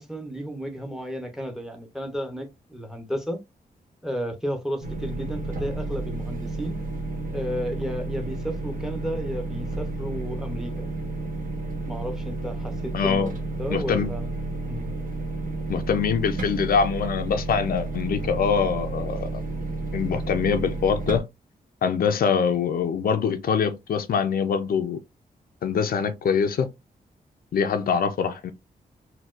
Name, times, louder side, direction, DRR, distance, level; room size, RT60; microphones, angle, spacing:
voice 1, 0.0-3.4 4.0-6.8 7.3-10.9 11.9-13.3 13.6-14.3 14.7-14.9, equal, 5° right, 0.6 m, -33 dB
sound 1, 4.8-21.2, right 2 dB, 60° right, 0.8 m, -31 dB
voice 2, 12.9-13.3 13.7-14.1 15.7-19.3 19.9-21.3 21.8-25.0 25.6-26.7 27.5-28.5, left 6 dB, 70° left, 0.4 m, -24 dB
4.1 x 2.2 x 2.4 m
wide cardioid pair, 160°, 16 cm